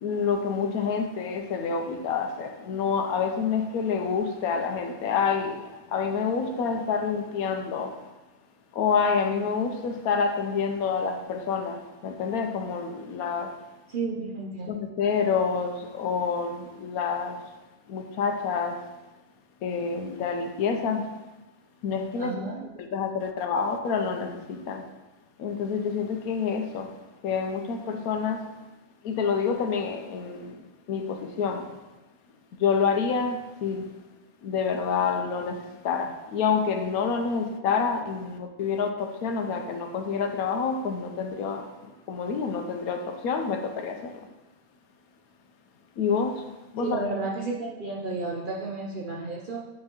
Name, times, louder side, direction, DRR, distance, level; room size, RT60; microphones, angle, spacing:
voice 1, 0.0-8.0 8.7-13.6 14.7-17.5 17.9-18.9 19.6-21.1 21.8-22.5 22.8-24.8 25.4-26.9 27.2-28.5 29.0-30.6 30.9-31.8 32.6-33.9 34.4-44.1 46.0-46.5 46.7-47.0, left 5 dB, 90° left, 5 dB, 1.2 m, -28 dB
voice 2, 13.9-14.7 22.2-22.7 46.8-49.7, right 3 dB, 55° right, -2 dB, 0.6 m, -32 dB
7.5 x 4.4 x 2.9 m, 1.1 s
omnidirectional pair, 1.5 m